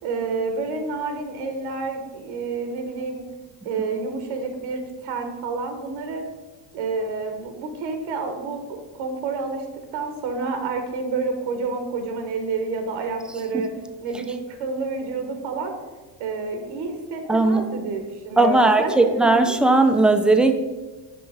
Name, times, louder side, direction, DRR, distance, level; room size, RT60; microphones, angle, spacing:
voice 1, 0.0-3.2 3.6-6.2 6.7-9.6 9.9-13.7 14.0-15.7 16.2-19.6, right 4 dB, 75° right, 5 dB, 1.3 m, -29 dB
voice 2, 17.3-17.7 18.4-20.5, right 2 dB, ahead, 7 dB, 0.4 m, -17 dB
6.1 x 5.0 x 4.8 m, 1.2 s
supercardioid pair, 100°, 49 cm